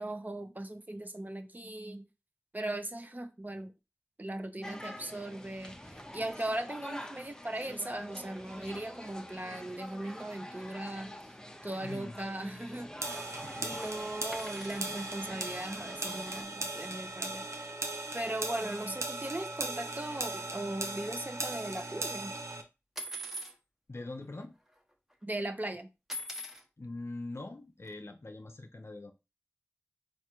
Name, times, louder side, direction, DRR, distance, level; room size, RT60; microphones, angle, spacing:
voice 1, 0.0-2.1 2.5-3.7 4.2-11.2 11.6-13.3 13.6-17.5 18.1-22.3 25.2-25.9, right 1 dB, 35° right, 0.7 m, -38 dB
sound 1, 4.6-16.4, left 1 dB, 10° left, 0.6 m, -46 dB
voice 2, 11.8-12.2 13.3-13.9 23.9-24.6 26.8-29.1, left 2 dB, 55° left, 0.6 m, -43 dB
sound 2, 13.0-22.6, right 2 dB, 65° right, 0.7 m, -38 dB
sound 3, 14.3-14.9 17.1-17.2 17.5-17.7 17.9-18.0 18.8-18.9 19.4-21.6 23.0-23.6 24.3-24.4 24.7-25.1 26.1-26.6 27.8-27.9, equal, 5° right, 0.9 m, -43 dB
4.8 x 2.5 x 4.4 m
wide cardioid pair, 55°, 5 cm